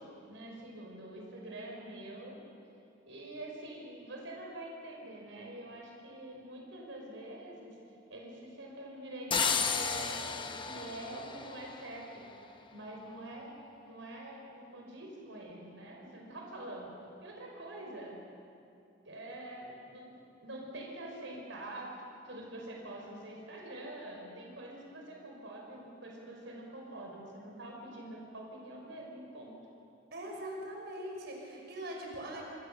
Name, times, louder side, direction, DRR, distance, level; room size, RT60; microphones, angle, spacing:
voice 1, 0.0-2.4 3.1-7.8 8.1-12.2 12.7-13.5 13.8-16.9 17.2-18.2 19.0-20.1 20.4-22.0 22.2-29.6, right 1 dB, 80° right, -1 dB, 5.1 m, -45 dB
sound 1, 9.3-12.2, left 5 dB, 25° left, 1.2 m, -33 dB
voice 2, 30.1-32.4, right 1 dB, 60° right, 0 dB, 5.4 m, -41 dB
26.0 x 26.0 x 6.9 m, 2.7 s
head